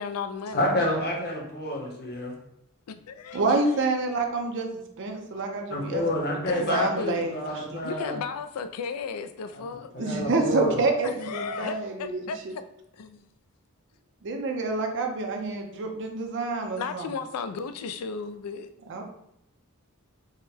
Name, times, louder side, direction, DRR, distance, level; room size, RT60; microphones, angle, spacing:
voice 1, 0.0-0.7 2.9-3.6 6.5-7.2 7.8-9.9 11.0-12.4 13.0-13.2 16.8-18.7, left 5 dB, 80° left, 10 dB, 0.4 m, -34 dB
voice 2, 0.5-2.3 5.7-8.2 9.9-10.8, left 1 dB, 45° left, 0 dB, 0.9 m, -28 dB
voice 3, 3.3-6.0 6.5-7.3 7.7-7.8 10.0-12.5 14.2-17.1 18.9-19.0, right 3 dB, 55° right, 3 dB, 0.6 m, -28 dB
3.7 x 2.1 x 4.2 m, 0.77 s
head